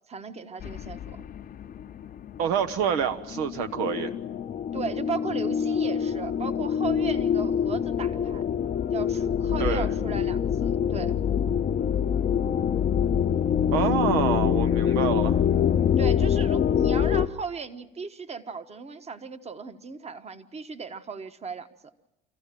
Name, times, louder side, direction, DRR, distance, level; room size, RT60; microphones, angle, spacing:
voice 1, 0.1-1.2 4.7-8.4 8.9-11.2 16.0-21.7, right 5 dB, 30° right, 10 dB, 1.3 m, -36 dB
sound 1, 0.6-17.3, left 8 dB, 45° left, 0.7 m, -25 dB
voice 2, 2.4-4.1 9.6-9.9 13.7-15.4, right 7 dB, 80° right, 9 dB, 1.0 m, -27 dB
25.5 x 15.0 x 7.6 m, 0.93 s
supercardioid pair, 80°, 21 cm